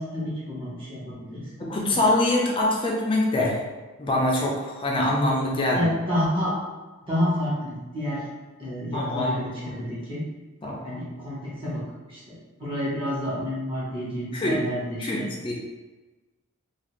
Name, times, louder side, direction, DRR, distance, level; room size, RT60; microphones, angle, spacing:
voice 1, 0.0-1.5 5.7-6.6 7.0-8.2 8.6-10.2 10.8-11.8 12.1-15.3, left 1 dB, 25° right, -8 dB, 0.9 m, -29 dB
voice 2, 1.6-3.6 4.0-5.9 8.9-9.4 9.7-9.8 10.6-10.8 14.3-14.6 15.0-15.5, left 1 dB, 25° left, -2 dB, 0.4 m, -24 dB
2.5 x 2.4 x 3.0 m, 1.2 s
head